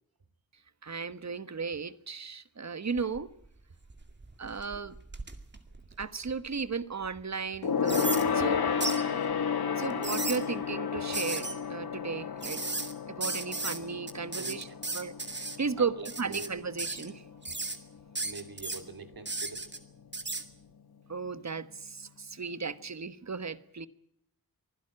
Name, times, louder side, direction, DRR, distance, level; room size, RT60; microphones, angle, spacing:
voice 1, 0.8-3.3 4.4-5.0 6.0-8.6 9.8-12.6 13.2-14.7 14.9-17.2 21.1-23.9, right 5 dB, 50° right, 13 dB, 1.3 m, -35 dB
sound 1, 2.9-3.5 3.9-6.5 7.0-7.1 7.9-8.2 8.8-9.0 9.8-10.4 11.1-11.5 12.4-12.9 13.2-13.8 14.1-15.6 16.0-16.5 16.8-17.1 17.4-17.8 18.1-18.8 19.2-19.8 20.1-20.4, right 3 dB, 30° right, 2.3 m, -35 dB
Gong, 7.6-17.4 17.7-18.0 18.3-18.4, left 6 dB, 85° left, 1.9 m, -32 dB
voice 2, 13.5-13.9 14.3-14.7 15.8-16.5 18.2-19.7, right 4 dB, 75° right, 8 dB, 3.0 m, -44 dB
25.0 x 16.0 x 8.9 m, 0.68 s
wide cardioid pair, 110°, 36 cm